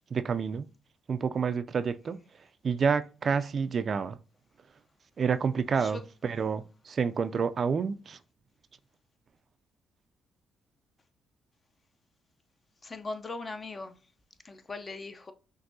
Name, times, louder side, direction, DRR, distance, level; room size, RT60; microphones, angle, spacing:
voice 1, 0.1-0.7 1.1-2.2 2.6-4.2 5.2-8.2, right 6 dB, 45° right, 0.3 m, -29 dB
voice 2, 12.8-13.9 14.5-15.3, left 3 dB, 30° left, 0.6 m, -39 dB
5.9 x 2.7 x 2.6 m
cardioid pair, 90°, 0 cm